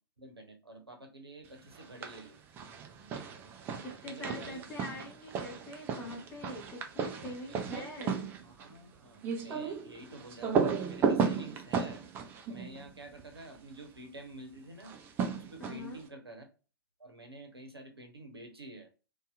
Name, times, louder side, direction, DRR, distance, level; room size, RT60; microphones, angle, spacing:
voice 1, 0.2-2.4 4.0-4.7 7.2-7.9 8.4-15.0 15.3-16.5 17.0-18.9, right 2 dB, 85° right, 5 dB, 0.8 m, -49 dB
sound 1, 1.7-2.3 2.6-13.6 14.8-16.0, right 6 dB, 15° right, 0.4 m, -35 dB
voice 2, 3.8-8.3 15.6-16.0, left 1 dB, 15° left, 0 dB, 0.7 m, -43 dB
2.6 x 2.3 x 2.2 m, 0.33 s
figure-of-eight pair, 115°, 13 cm